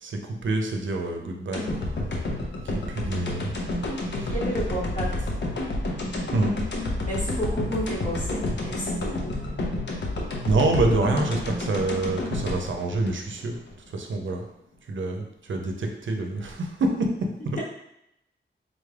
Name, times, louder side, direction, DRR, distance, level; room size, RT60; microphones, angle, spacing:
voice 1, 0.0-1.9 2.9-3.6 4.2-4.3 6.3-6.5 10.4-13.6 13.9-14.4 14.9-17.1 17.4-17.6, right 2 dB, 75° right, 3 dB, 0.6 m, -26 dB
sound 1, 1.5-13.8 14.1-14.2, left 1 dB, 60° left, 0.6 m, -30 dB
voice 2, 4.1-5.3 7.0-9.4, equal, 40° left, -6 dB, 1.1 m, -31 dB
3.9 x 2.4 x 3.3 m, 0.82 s
wide cardioid pair, 135°, 20 cm